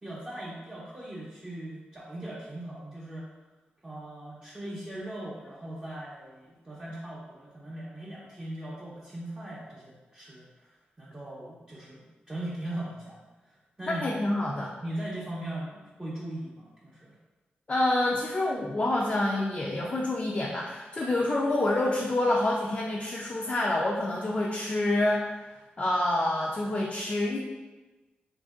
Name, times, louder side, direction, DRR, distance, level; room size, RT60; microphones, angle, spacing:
voice 1, 0.0-3.3 3.8-14.2 14.8-17.2, right 1 dB, 20° right, -8 dB, 0.6 m, -39 dB
voice 2, 13.9-14.7 17.7-25.4 25.8-27.4, left 1 dB, 35° left, -3 dB, 0.3 m, -27 dB
2.7 x 2.6 x 2.3 m, 1.2 s
cardioid pair, 60°, 4 cm